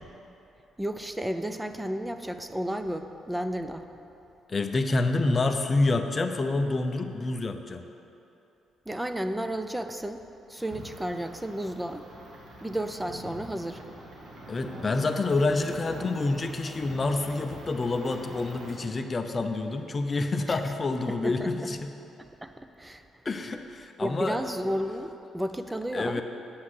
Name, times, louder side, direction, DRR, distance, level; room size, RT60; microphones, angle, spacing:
voice 1, 0.8-3.9 8.9-12.1 12.6-13.8 20.5-20.6 21.1-21.7 22.2-23.0 24.0-26.2, right 1 dB, 10° right, 8 dB, 0.6 m, -33 dB
voice 2, 4.5-7.8 14.5-21.9 23.2-24.4 25.9-26.2, left 3 dB, 30° left, 7 dB, 0.7 m, -28 dB
sound 1, 10.6-18.7, right 1 dB, 60° right, 1.8 m, -44 dB
8.7 x 5.8 x 8.1 m, 2.9 s
cardioid pair, 90°, 0 cm